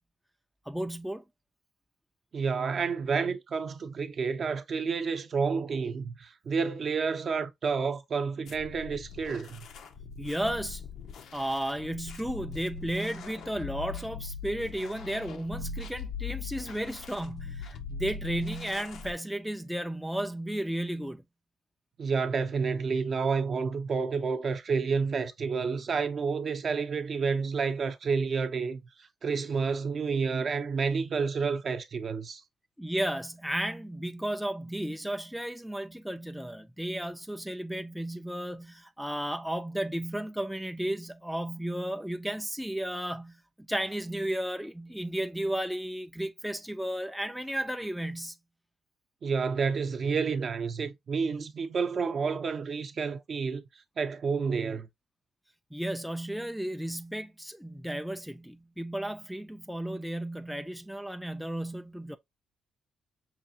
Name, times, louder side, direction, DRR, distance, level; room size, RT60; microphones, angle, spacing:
voice 1, 0.7-1.2 10.2-10.8 11.3-21.2 32.8-48.4 55.7-62.2, right 1 dB, ahead, 0.3 m, -34 dB
voice 2, 2.3-9.7 22.0-28.8 29.2-32.4 49.2-53.6 54.0-54.9, right 5 dB, 50° right, 0.6 m, -30 dB
sound 1, 8.5-19.1, left 5 dB, 75° left, 0.5 m, -41 dB
5.8 x 2.4 x 2.7 m
cardioid pair, 90°, 0 cm